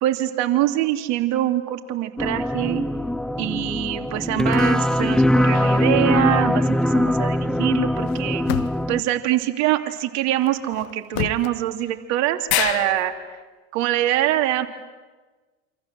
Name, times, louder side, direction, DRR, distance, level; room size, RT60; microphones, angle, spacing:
voice 1, 0.0-2.8 3.4-8.4 8.9-13.4 13.7-14.7, right 13 dB, 55° right, 6 dB, 3.0 m, -24 dB
sound 1, 2.2-9.0, left 1 dB, ahead, 1.1 m, -21 dB
sound 2, 4.6-5.0 7.9-9.0 10.4-11.5, left 14 dB, 65° left, 1.5 m, -32 dB
sound 3, 5.5-6.8 11.4-11.5 11.8-11.9 12.5-13.4, left 11 dB, 85° left, 1.8 m, -28 dB
28.0 x 26.5 x 7.7 m, 1.3 s
hypercardioid pair, 90°, 32 cm